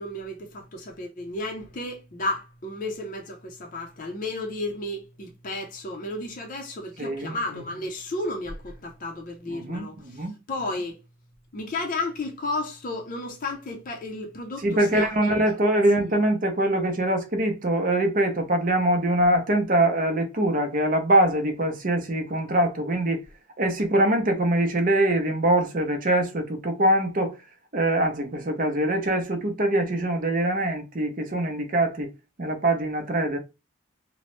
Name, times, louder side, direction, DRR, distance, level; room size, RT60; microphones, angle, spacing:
voice 1, 0.0-11.0 11.5-15.1, left 2 dB, 40° left, 0.5 m, -33 dB
voice 2, 7.0-7.4 9.5-10.4 14.6-23.2 23.6-27.3 27.7-32.1 32.4-33.4, right 1 dB, 40° right, 0.6 m, -23 dB
2.9 x 2.0 x 3.0 m
head